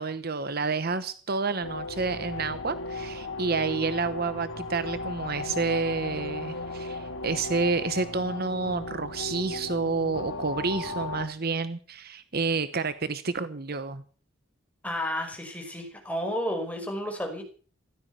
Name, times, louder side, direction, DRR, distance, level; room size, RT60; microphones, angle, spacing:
voice 1, 0.0-14.0, right 4 dB, 50° right, 13 dB, 1.0 m, -29 dB
sound 1, 1.6-11.3, left 2 dB, 85° left, 2.5 m, -36 dB
voice 2, 14.8-17.4, equal, 5° left, 3 dB, 5.4 m, -32 dB
15.5 x 13.0 x 6.9 m, 0.42 s
head